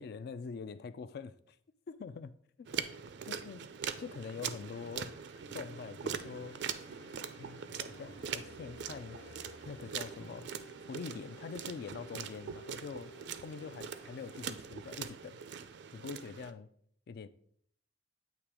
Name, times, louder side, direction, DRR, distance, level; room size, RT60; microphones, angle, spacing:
voice 1, 0.0-1.6 1.9-2.7 3.2-3.7 4.0-5.1 5.5-6.7 7.4-9.2 9.6-10.5 10.9-13.1 13.4-15.4 15.9-16.7 17.1-17.3, left 5 dB, 60° left, 0.3 m, -44 dB
sound 1, 2.7-16.5, right 7 dB, 65° right, 0.4 m, -42 dB
sound 2, 4.7-14.6, right 1 dB, 85° left, 0.9 m, -56 dB
sound 3, 5.4-13.2, right 1 dB, 30° left, 0.8 m, -64 dB
8.6 x 2.9 x 4.8 m
head